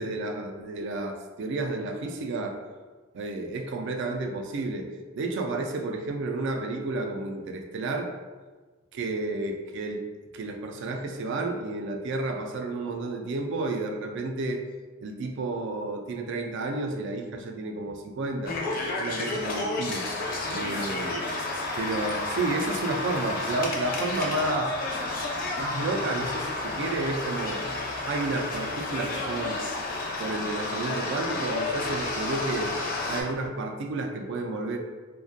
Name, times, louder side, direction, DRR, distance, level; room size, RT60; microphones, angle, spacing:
voice 1, 0.0-2.6 3.1-8.1 8.9-10.0 10.3-14.6 15.0-18.6 19.0-20.1 20.5-21.1 21.8-24.7 25.6-27.6 28.0-29.6 30.2-32.7 33.1-34.8, right 2 dB, 60° right, 3 dB, 0.3 m, -31 dB
sound 1, 18.5-33.2, left 2 dB, 45° left, 0.4 m, -31 dB
2.4 x 2.2 x 2.6 m, 1.3 s
head